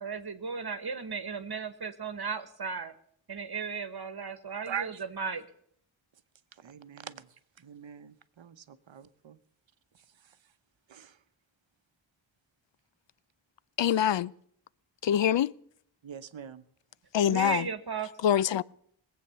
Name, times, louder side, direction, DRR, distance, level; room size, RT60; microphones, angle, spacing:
voice 1, 0.0-2.9 3.3-5.4 17.3-18.1, right 5 dB, 50° right, 1.2 m, -35 dB
voice 2, 4.7-5.0 6.6-7.2 7.6-9.4 10.9-11.1 16.0-16.6, right 8 dB, 70° right, 0.9 m, -41 dB
voice 3, 13.8-14.3 15.0-15.5 17.1-17.7 18.2-18.6, left 10 dB, 65° left, 0.5 m, -24 dB
20.0 x 8.1 x 6.8 m
wide cardioid pair, 60°, 48 cm